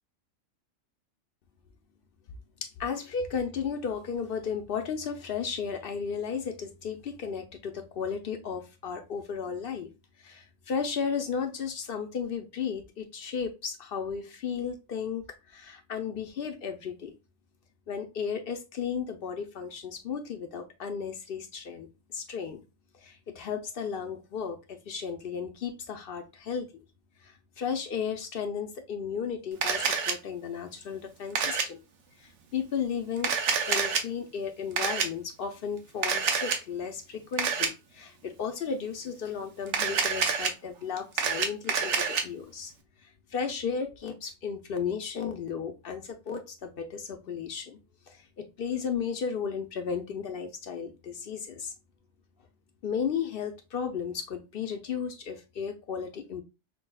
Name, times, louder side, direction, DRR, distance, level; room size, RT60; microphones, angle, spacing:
voice 1, 2.6-9.9 10.2-17.1 17.9-22.6 22.9-26.7 27.2-31.8 32.2-33.3 33.7-42.7 43.0-47.8 48.1-51.7 52.8-56.4, left 6 dB, 60° left, 6 dB, 0.6 m, -34 dB
Camera, 29.6-30.1 31.3-31.6 33.2-34.0 34.8-35.1 36.0-36.6 37.4-37.7 39.7-40.5 41.0-42.2, right 6 dB, 70° right, 0.9 m, -27 dB
5.9 x 2.2 x 2.2 m, 0.27 s
omnidirectional pair, 1.3 m